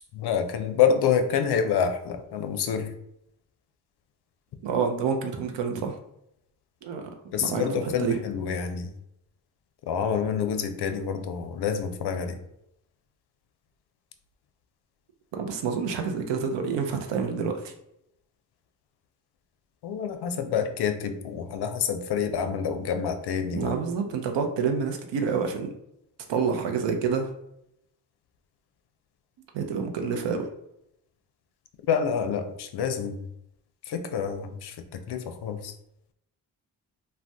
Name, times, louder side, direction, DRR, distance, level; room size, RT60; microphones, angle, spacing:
voice 1, 0.1-2.9 7.3-8.9 9.9-12.4 19.8-23.7 31.9-33.2 33.8-35.7, left 7 dB, 60° left, 7 dB, 0.5 m, -27 dB
voice 2, 4.6-6.0 6.8-7.1 7.4-8.2 15.3-17.7 23.5-25.7 26.3-27.3 29.5-30.5, right 6 dB, 70° right, 5 dB, 0.6 m, -28 dB
2.5 x 2.2 x 3.3 m, 0.79 s
supercardioid pair, 40°, 45 cm